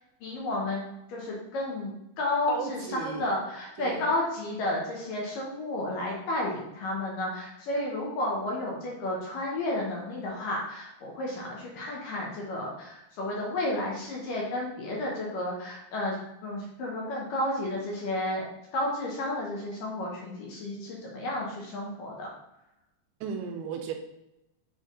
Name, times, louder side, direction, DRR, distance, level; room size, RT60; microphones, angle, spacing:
voice 1, 0.2-18.5 18.7-22.3, left 1 dB, 65° left, -3 dB, 2.4 m, -32 dB
voice 2, 2.5-3.3 3.8-4.1 23.2-23.9, right 6 dB, 80° right, 4 dB, 2.6 m, -35 dB
7.2 x 3.6 x 3.9 m, 0.88 s
omnidirectional pair, 4.7 m